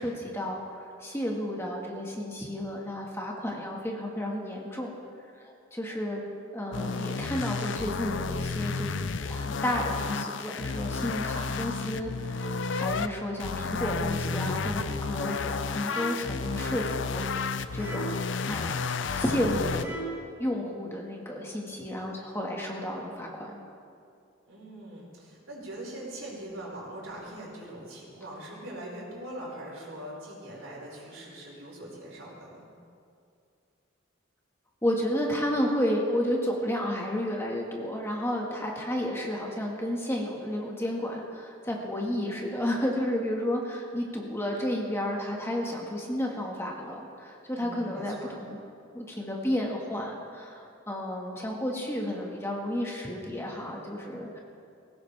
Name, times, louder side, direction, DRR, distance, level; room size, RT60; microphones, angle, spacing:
voice 1, 0.0-4.9 5.3-6.2 6.5-18.1 18.5-18.9 19.1-20.0 20.4-23.6 34.8-48.6 48.9-54.4, left 1 dB, 10° left, -1 dB, 1.7 m, -32 dB
sound 1, 6.7-13.1 13.4-19.8, left 4 dB, 60° left, 0.5 m, -32 dB
sound 2, 15.8-16.4 17.8-18.4 19.8-20.4, right 2 dB, 15° right, 3.2 m, -40 dB
voice 2, 24.5-32.7 47.5-48.3, right 1 dB, 85° right, -4 dB, 5.0 m, -42 dB
21.0 x 17.5 x 3.5 m, 2.4 s
head